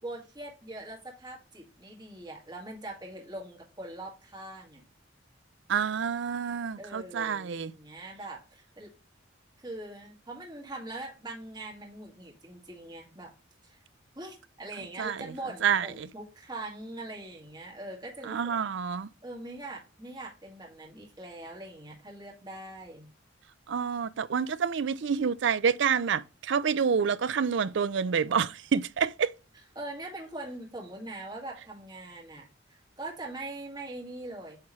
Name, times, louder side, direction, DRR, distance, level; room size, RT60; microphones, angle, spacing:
voice 1, 0.0-4.8 6.8-8.9 9.6-13.3 13.6-13.8 14.2-18.6 19.2-23.1 29.8-34.6, right 2 dB, 25° right, 2.1 m, -42 dB
voice 2, 5.7-7.7 15.0-15.3 15.6-16.1 18.2-19.1 23.7-29.3, right 6 dB, 70° right, 0.5 m, -28 dB
8.9 x 3.6 x 3.1 m
head